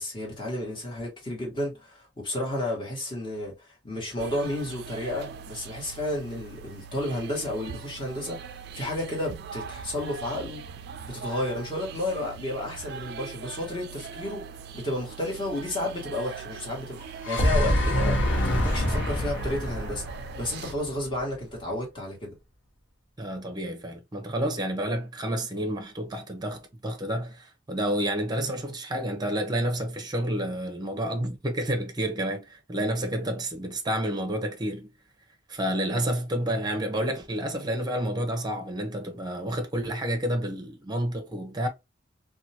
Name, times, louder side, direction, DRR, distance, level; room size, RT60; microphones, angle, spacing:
voice 1, 0.0-10.7 11.0-14.4 14.7-22.3, left 1 dB, 25° left, 1.4 m, -32 dB
sound 1, 4.2-20.7, right 6 dB, 60° right, 0.3 m, -41 dB
sound 2, 17.0-21.2, equal, 75° left, 0.9 m, -26 dB
voice 2, 23.2-34.9 35.5-41.7, right 1 dB, 20° right, 0.7 m, -29 dB
2.7 x 2.3 x 2.7 m
head